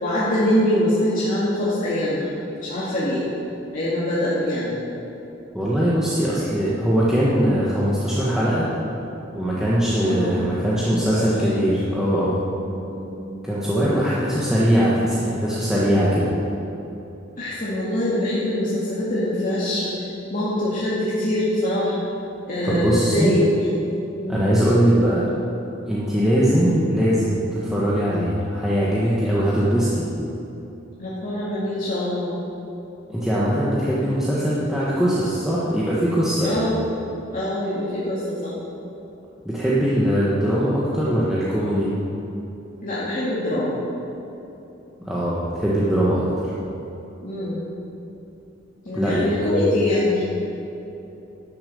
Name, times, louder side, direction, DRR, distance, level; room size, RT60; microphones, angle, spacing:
voice 1, 0.0-2.3 2.6-3.2 3.7-4.8 9.9-10.6 11.1-11.6 12.7-14.0 17.4-19.9 20.3-22.0 22.5-23.8 24.2-24.5 31.0-32.3 36.4-36.8 37.3-38.5 42.8-43.8 47.2-47.6 48.8-50.2, left 1 dB, 45° left, -9 dB, 2.1 m, -24 dB
voice 2, 5.5-8.7 9.3-12.4 13.4-16.3 22.6-23.3 24.3-25.3 25.9-30.1 33.1-36.6 39.4-41.9 45.0-46.5 48.9-49.8, equal, 5° right, -8 dB, 1.4 m, -21 dB
11.5 x 7.3 x 7.0 m, 3.0 s
head